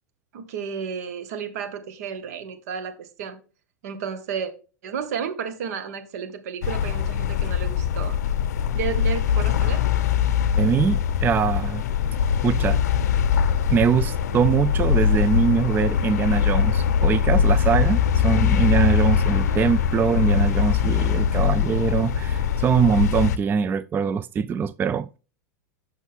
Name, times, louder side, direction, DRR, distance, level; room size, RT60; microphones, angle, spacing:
voice 1, 0.3-3.4 3.8-4.5 4.8-8.2 8.7-9.9 19.5-19.8, right 7 dB, 70° right, 1.7 m, -32 dB
sound 1, 6.6-23.4, left 8 dB, 80° left, 0.5 m, -22 dB
voice 2, 10.6-11.8 12.4-12.8 13.7-25.2, right 7 dB, 20° right, 0.3 m, -23 dB
8.0 x 6.3 x 3.5 m
hypercardioid pair, 105°, 9 cm